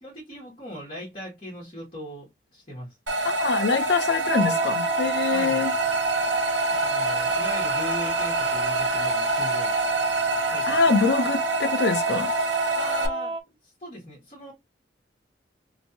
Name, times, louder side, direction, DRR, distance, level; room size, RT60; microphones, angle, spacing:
voice 1, 0.0-3.0 5.3-5.6 6.7-9.8 10.5-11.1 12.7-14.5, equal, 30° left, 1.4 m, -39 dB
sound 1, 3.1-13.1, right 2 dB, 75° right, 0.8 m, -26 dB
voice 2, 3.2-5.7 10.7-12.3, left 5 dB, 65° left, 0.5 m, -24 dB
sound 2, 4.3-13.4, right 2 dB, 30° right, 0.4 m, -30 dB
3.0 x 2.6 x 2.7 m
head